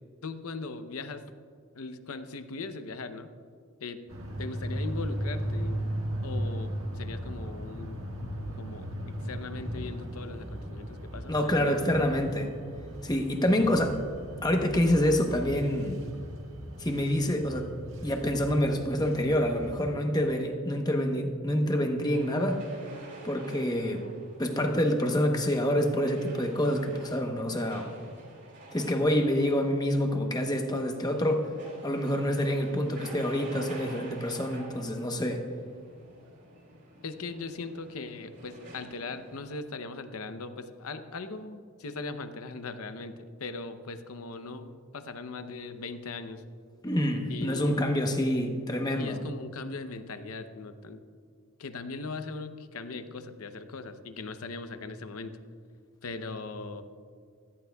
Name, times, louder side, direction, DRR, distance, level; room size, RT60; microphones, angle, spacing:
voice 1, 0.2-1.2 1.7-3.3 3.8-4.0 4.4-5.9 6.2-8.0 8.6-11.7 37.0-43.1 43.4-46.4 47.3-48.0 49.0-51.0 51.6-55.4 56.0-56.8, left 3 dB, 85° left, 10 dB, 0.7 m, -39 dB
sound 1, 4.1-19.9, equal, 70° right, 1.6 m, -37 dB
voice 2, 11.3-12.5 13.0-14.0 14.4-16.0 16.8-17.7 18.0-22.6 23.2-24.1 24.4-27.9 28.7-31.5 31.8-35.4 46.8-49.2, equal, 20° left, 4 dB, 0.9 m, -27 dB
sound 2, 22.0-39.4, right 2 dB, 50° right, 3.4 m, -49 dB
17.0 x 14.0 x 2.3 m, 2.2 s
head